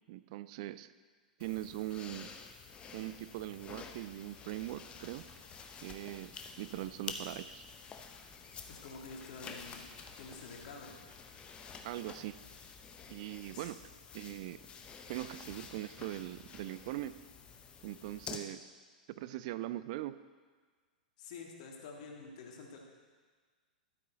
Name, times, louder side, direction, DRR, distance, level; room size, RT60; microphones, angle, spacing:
voice 1, 0.1-0.9 1.4-2.3 2.9-5.2 5.8-7.6 11.8-12.4 13.1-13.8 14.1-14.6 15.1-17.2 17.8-18.7 19.1-20.2, right 15 dB, 45° right, 15 dB, 0.3 m, -41 dB
sound 1, 1.4-18.4, left 5 dB, 20° left, 0.8 m, -49 dB
voice 2, 8.7-9.9 10.2-10.9 13.5-13.7 21.2-22.8, left 4 dB, 50° left, 1 dB, 1.7 m, -48 dB
12.5 x 8.4 x 4.0 m, 1.5 s
figure-of-eight pair, 100°, 5 cm